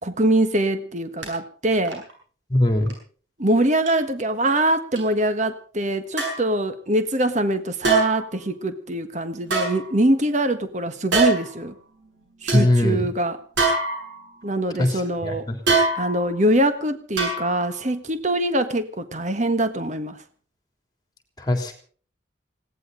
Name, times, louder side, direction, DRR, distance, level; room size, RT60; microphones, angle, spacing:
voice 1, 0.0-2.0 3.4-11.7 12.4-13.4 14.4-15.5 15.9-20.2, right 1 dB, 35° right, 10 dB, 1.5 m, -23 dB
sound 1, 1.2-1.3 1.8-2.1 2.9-3.0 3.9-4.0 5.0-5.1 6.2-6.5 7.8-8.3 9.4-10.3 11.1-11.6 12.1-12.2 12.5-12.7 13.6-14.4 15.7-16.3 17.2-17.7 18.1-18.2, right 3 dB, 70° right, 7.7 m, -23 dB
voice 2, 2.5-2.9 12.5-13.1 14.8-15.5 21.5-21.7, left 1 dB, 20° left, 6 dB, 3.3 m, -21 dB
20.5 x 17.5 x 3.9 m, 0.43 s
head